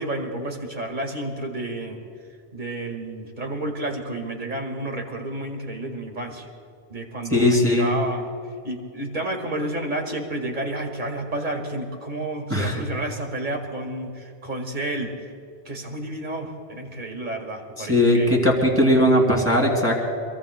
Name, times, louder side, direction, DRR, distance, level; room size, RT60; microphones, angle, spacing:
voice 1, 0.0-2.0 2.5-6.5 6.9-8.3 8.6-15.1 15.7-18.4, right 1 dB, 45° right, 3 dB, 2.0 m, -30 dB
voice 2, 7.3-7.9 12.5-12.8 17.9-20.0, left 1 dB, 10° right, -1 dB, 2.9 m, -19 dB
25.5 x 23.0 x 2.2 m, 2.4 s
omnidirectional pair, 1.1 m